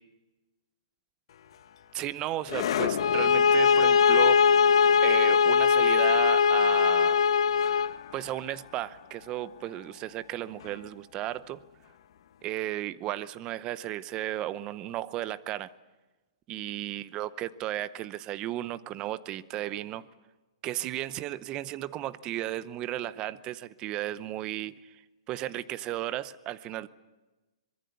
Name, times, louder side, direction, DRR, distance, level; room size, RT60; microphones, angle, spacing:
sound 1, 1.3-12.4, left 9 dB, 60° left, 1.3 m, -39 dB
voice 1, 1.9-4.5 5.0-7.2 8.1-11.6 12.4-15.7 16.5-20.1 20.6-25.0 25.3-26.9, right 14 dB, 25° right, 17 dB, 0.8 m, -34 dB
sound 2, 3.0-8.0, left 6 dB, 80° left, 0.7 m, -21 dB
24.5 x 22.0 x 8.4 m, 1.2 s
hypercardioid pair, 150°, 3 cm